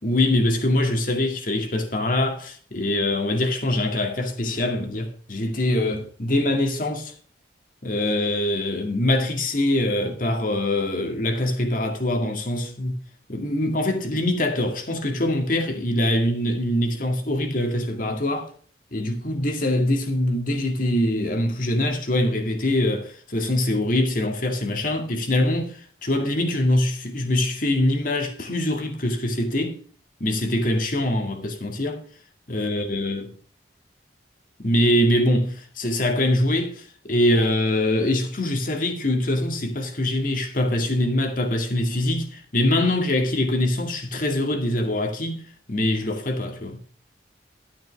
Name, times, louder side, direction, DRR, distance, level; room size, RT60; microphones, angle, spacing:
voice 1, 0.0-7.1 7.8-13.0 13.3-18.5 18.9-29.8 30.2-32.0 32.5-33.3 34.6-45.4 45.7-46.8, left 1 dB, 45° left, 2.2 m, -23 dB
12.0 x 9.5 x 3.6 m
head